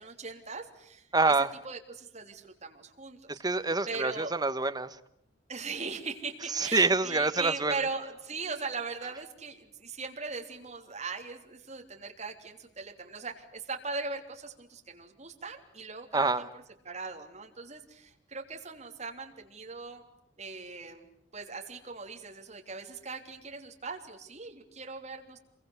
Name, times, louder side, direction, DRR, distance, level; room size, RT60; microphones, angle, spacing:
voice 1, 0.0-1.4 1.6-3.4 3.9-4.3 5.5-20.0 20.4-25.4, right 4 dB, 35° right, 3 dB, 3.5 m, -40 dB
voice 2, 1.1-1.5 3.4-4.9 6.6-7.7 16.1-16.4, right 3 dB, 20° right, 10 dB, 1.1 m, -26 dB
27.5 x 23.0 x 8.2 m, 0.74 s
head